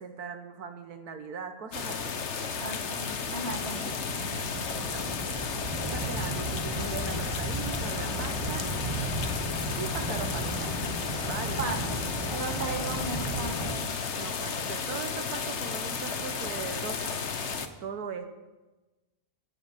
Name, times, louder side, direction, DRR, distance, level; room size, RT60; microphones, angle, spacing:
voice 1, 0.0-2.2 4.7-5.3 5.9-8.7 9.8-10.9 11.3-11.7 14.1-17.4 17.8-18.3, right 6 dB, 85° right, 8 dB, 1.7 m, -39 dB
sound 1, 1.7-17.7, left 6 dB, 50° left, 1.3 m, -33 dB
sound 2, 2.0-13.7, right 1 dB, 20° right, 2.7 m, -35 dB
voice 2, 2.6-4.0 4.2-4.5 11.6-11.8 12.3-14.0, right 3 dB, 45° right, 4 dB, 2.1 m, -36 dB
15.0 x 10.5 x 8.3 m, 1.1 s
omnidirectional pair, 1.6 m